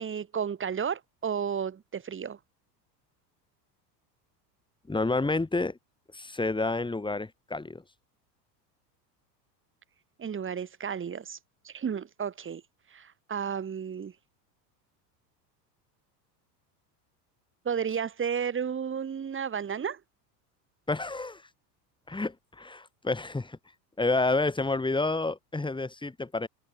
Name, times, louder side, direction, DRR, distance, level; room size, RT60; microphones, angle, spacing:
voice 1, 0.0-2.4 10.2-11.4 11.6-12.6 12.9-14.1 17.6-20.0, right 7 dB, 25° right, 2.6 m, -32 dB
voice 2, 4.9-5.8 6.1-7.8 20.9-21.4 22.1-23.6 24.0-26.5, left 3 dB, 10° left, 3.7 m, -29 dB
open air
hypercardioid pair, 95°, 49 cm